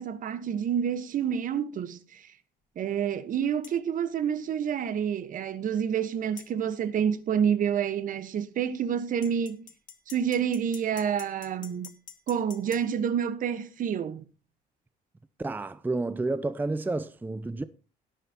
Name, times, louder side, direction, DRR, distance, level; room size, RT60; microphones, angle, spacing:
voice 1, 0.0-2.2 2.8-9.7 10.1-11.9 12.3-14.2, right 8 dB, 55° right, 1.2 m, -28 dB
sound 1, 3.6-3.8 6.4-6.5 9.2-12.9, left 8 dB, 55° left, 1.7 m, -47 dB
voice 2, 15.4-17.6, right 2 dB, 10° right, 0.6 m, -30 dB
17.5 x 10.5 x 2.9 m
cardioid pair, 110°, 17 cm